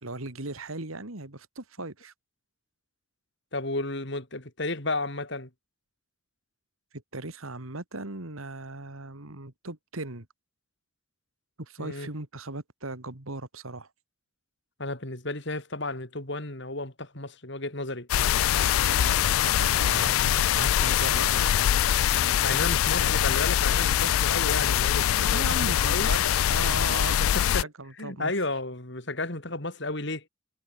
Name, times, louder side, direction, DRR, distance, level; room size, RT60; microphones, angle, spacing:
voice 1, 0.0-2.1 7.1-10.3 11.6-13.9 18.4-23.4 25.3-27.3 27.6-28.3, right 2 dB, 85° right, 2.5 m, -38 dB
voice 2, 3.5-5.5 11.8-12.1 14.8-18.1 22.4-26.1 27.3-27.7 28.0-30.2, left 2 dB, 55° left, 3.9 m, -33 dB
sound 1, 18.1-27.6, left 11 dB, 85° left, 0.3 m, -23 dB
head